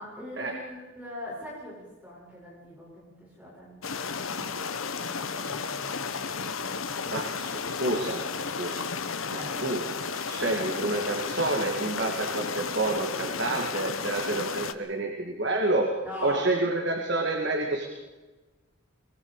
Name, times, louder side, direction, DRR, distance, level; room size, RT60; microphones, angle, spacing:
voice 1, 0.0-6.3 9.3-9.6 16.0-16.5, left 1 dB, 5° right, -5 dB, 7.6 m, -42 dB
sound 1, 3.8-14.7, left 5 dB, 85° left, 1.2 m, -33 dB
voice 2, 7.1-8.3 8.6-8.9 9.3-9.8 10.1-15.9 16.2-17.9, right 2 dB, 60° right, 2 dB, 2.5 m, -29 dB
24.0 x 22.5 x 5.1 m, 1.2 s
head